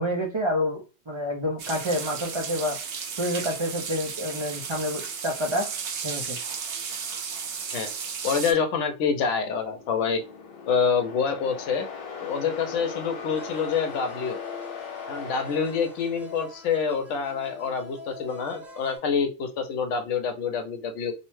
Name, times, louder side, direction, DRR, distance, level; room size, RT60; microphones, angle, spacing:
voice 1, 0.0-2.8 3.2-5.7 6.0-6.4, equal, 50° right, -1 dB, 0.3 m, -28 dB
sound 1, 1.6-8.5, right 6 dB, 70° right, 0.9 m, -34 dB
voice 2, 8.2-10.2 10.7-11.9 12.2-14.4 15.1-21.1, left 6 dB, 80° left, 6 dB, 0.9 m, -27 dB
sound 2, 9.6-16.6, left 6 dB, 55° left, 0.8 m, -38 dB
sound 3, 13.3-19.0, left 2 dB, ahead, 0.8 m, -46 dB
2.7 x 2.1 x 3.0 m, 0.32 s
omnidirectional pair, 1.2 m